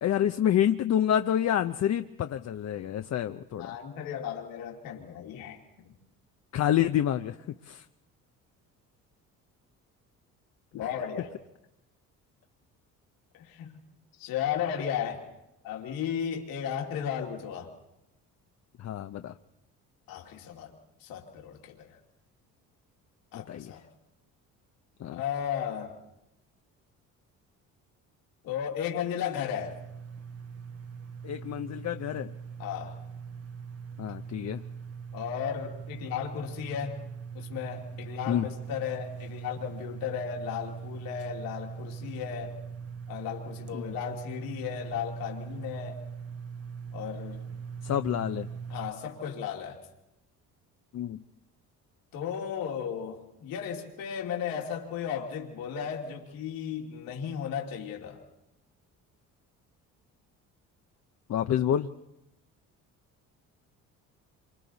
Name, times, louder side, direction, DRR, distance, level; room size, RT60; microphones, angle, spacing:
voice 1, 0.0-3.7 6.5-7.4 7.6-7.8 18.8-19.3 23.3-23.7 25.0-25.2 31.2-32.3 34.0-34.6 38.3-38.5 43.7-43.9 47.8-48.5 50.9-51.2 61.3-61.9, left 10 dB, 50° left, 8 dB, 0.7 m, -28 dB
voice 2, 3.6-5.9 10.7-11.3 13.4-13.8 14.2-15.2 15.6-17.7 20.1-20.7 21.0-22.0 23.3-23.9 25.1-25.9 28.4-29.8 32.6-32.9 35.1-37.0 37.3-42.6 43.1-46.0 46.9-47.4 48.7-49.8 52.1-58.2, left 8 dB, 85° left, 1 dB, 2.6 m, -35 dB
sound 1, 29.6-48.9, right 6 dB, 45° right, 1.3 m, -41 dB
27.0 x 25.5 x 4.0 m, 0.89 s
cardioid pair, 85°, 34 cm